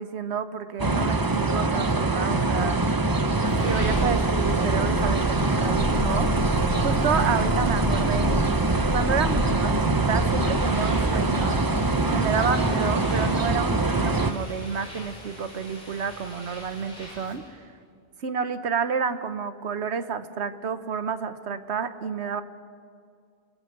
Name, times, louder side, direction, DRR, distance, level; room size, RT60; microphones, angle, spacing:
voice 1, 0.0-2.8 3.6-8.4 8.9-11.6 12.1-17.6 18.2-22.4, right 6 dB, 70° right, 11 dB, 1.3 m, -30 dB
sound 1, 0.8-14.3, right 2 dB, 20° right, 0.7 m, -24 dB
sound 2, 2.9-17.5, left 1 dB, 45° left, 5.9 m, -34 dB
29.5 x 17.5 x 6.7 m, 2.2 s
omnidirectional pair, 1.2 m